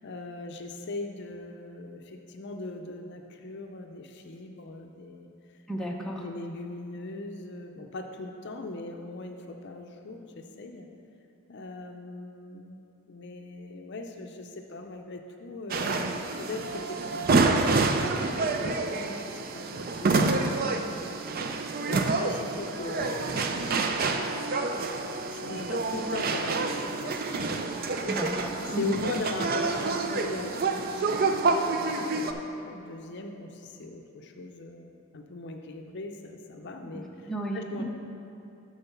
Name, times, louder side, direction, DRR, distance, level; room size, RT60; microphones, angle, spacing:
voice 1, 0.0-5.3 6.2-10.9 11.5-12.8 13.1-19.3 19.5-24.5 25.0-28.1 28.6-37.8, left 2 dB, 50° left, 4 dB, 0.5 m, -40 dB
voice 2, 5.7-6.2 28.1-29.0 37.3-37.8, right 1 dB, ahead, -2 dB, 0.6 m, -33 dB
sound 1, 15.7-32.3, right 3 dB, 40° right, 0.4 m, -28 dB
6.8 x 6.4 x 5.7 m, 2.8 s
head